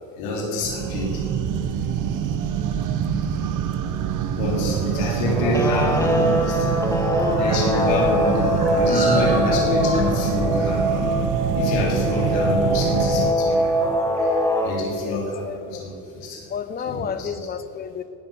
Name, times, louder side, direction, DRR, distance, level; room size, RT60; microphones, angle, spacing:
voice 1, 0.2-1.2 4.3-6.9 7.3-10.9 11.5-14.1 14.6-15.4 15.7-16.4 16.9-17.0 17.2-17.3, left 2 dB, 80° left, -2 dB, 3.4 m, -26 dB
sound 1, 0.6-13.3, right 7 dB, 45° right, 0.9 m, -25 dB
sound 2, 4.7-15.3, right 1 dB, 15° right, 2.6 m, -38 dB
Guitar, 5.3-14.7, equal, 5° left, 0.9 m, -23 dB
voice 2, 14.9-15.8 16.5-18.0, left 7 dB, 20° left, 12 dB, 0.6 m, -31 dB
18.0 x 6.9 x 6.9 m, 2.7 s
cardioid pair, 140°, 44 cm